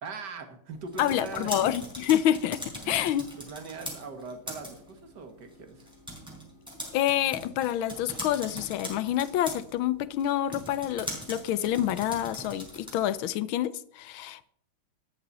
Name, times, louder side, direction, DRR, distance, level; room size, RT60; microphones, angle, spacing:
voice 1, 0.0-1.7 2.8-5.9, right 4 dB, 55° right, 2.2 m, -41 dB
sound 1, 0.7-13.2, equal, ahead, 4.4 m, -42 dB
voice 2, 1.0-3.3 6.9-14.5, left 11 dB, 75° left, 1.5 m, -27 dB
13.5 x 12.0 x 4.1 m
omnidirectional pair, 2.3 m